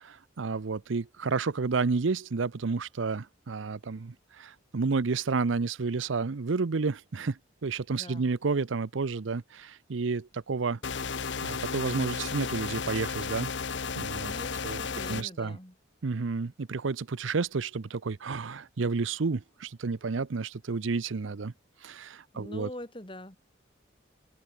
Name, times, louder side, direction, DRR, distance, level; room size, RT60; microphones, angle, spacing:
voice 1, 0.0-10.8 11.4-13.5 14.0-14.3 14.6-14.8 15.1-15.6 16.0-21.5 21.8-22.7, right 4 dB, 75° right, 0.6 m, -31 dB
voice 2, 7.9-8.3 14.2-15.7 22.3-23.4, left 1 dB, 25° left, 3.3 m, -43 dB
sound 1, 10.8-15.2, left 5 dB, 65° left, 0.9 m, -34 dB
open air
head